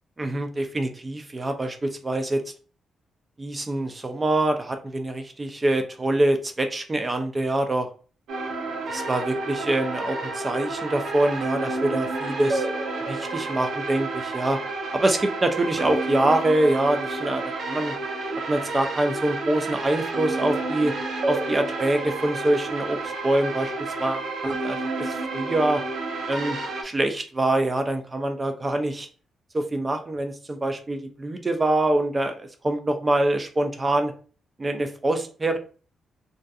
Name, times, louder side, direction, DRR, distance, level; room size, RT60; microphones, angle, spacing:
voice 1, 0.2-2.4 3.4-7.9 8.9-12.7 13.1-14.6 14.9-17.9 18.5-20.9 21.3-25.8 26.3-26.6 26.8-29.1 29.5-34.1 34.6-35.6, right 1 dB, 25° right, 6 dB, 0.3 m, -25 dB
sound 1, 8.3-26.8, right 3 dB, 80° right, 0.5 m, -30 dB
2.5 x 2.4 x 2.3 m, 0.39 s
cardioid pair, 110°, 0 cm